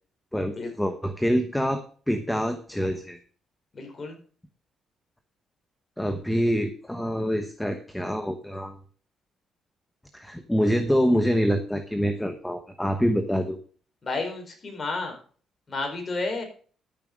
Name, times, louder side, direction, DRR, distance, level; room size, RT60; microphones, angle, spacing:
voice 1, 0.3-3.2 6.0-8.8 10.1-13.6, equal, 5° left, 7 dB, 1.1 m, -26 dB
voice 2, 3.7-4.2 14.0-15.1 15.7-16.4, left 3 dB, 35° left, 3 dB, 4.5 m, -31 dB
12.5 x 6.9 x 5.2 m, 0.43 s
cardioid pair, 90°, 0 cm